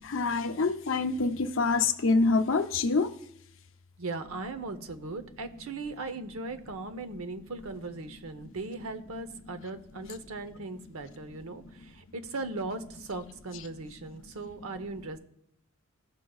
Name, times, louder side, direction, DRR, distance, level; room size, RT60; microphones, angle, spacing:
voice 1, 0.0-3.1 11.5-11.8, left 3 dB, 60° left, 6 dB, 0.7 m, -26 dB
voice 2, 4.0-15.2, right 3 dB, 75° right, 9 dB, 0.8 m, -38 dB
15.5 x 6.4 x 2.4 m, 0.74 s
head